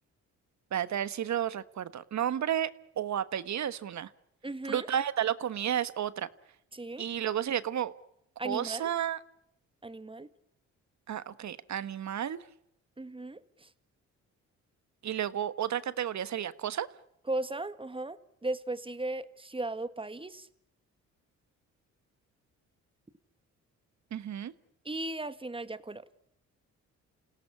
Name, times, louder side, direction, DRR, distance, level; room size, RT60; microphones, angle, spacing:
voice 1, 0.7-2.7 3.0-4.1 4.7-6.3 7.0-7.9 8.4-9.2 11.1-12.4 15.0-16.9 24.1-24.5, right 10 dB, 60° right, 15 dB, 1.4 m, -32 dB
voice 2, 4.4-4.9 6.7-7.0 8.4-8.9 9.8-10.3 13.0-13.7 17.3-20.5 24.8-26.0, right 2 dB, 15° right, 13 dB, 1.7 m, -36 dB
28.5 x 17.5 x 8.5 m, 0.78 s
cardioid pair, 75°, 32 cm